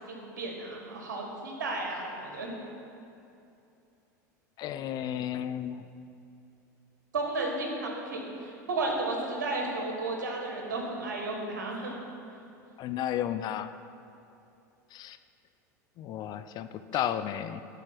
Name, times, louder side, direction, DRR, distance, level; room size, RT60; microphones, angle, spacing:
voice 1, 0.1-2.6 7.1-12.0, right 2 dB, 80° right, 1 dB, 1.6 m, -33 dB
voice 2, 4.6-5.8 12.8-13.7 14.9-15.2 16.0-17.6, left 10 dB, 45° left, 11 dB, 0.5 m, -33 dB
12.0 x 4.5 x 6.0 m, 2.7 s
hypercardioid pair, 85°, 10 cm